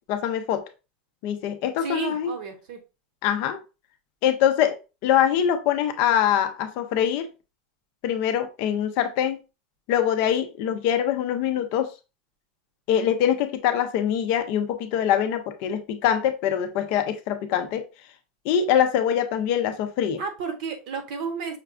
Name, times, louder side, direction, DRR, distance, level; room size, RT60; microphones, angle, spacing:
voice 1, 0.1-0.6 1.2-2.3 3.2-3.6 4.2-4.8 5.0-7.3 8.0-9.4 9.9-11.9 12.9-17.8 18.4-20.2, left 9 dB, 40° left, 0.4 m, -23 dB
voice 2, 1.8-2.8 20.2-21.6, right 5 dB, 50° right, 0.9 m, -32 dB
5.8 x 2.3 x 2.4 m
supercardioid pair, 175°, 5 cm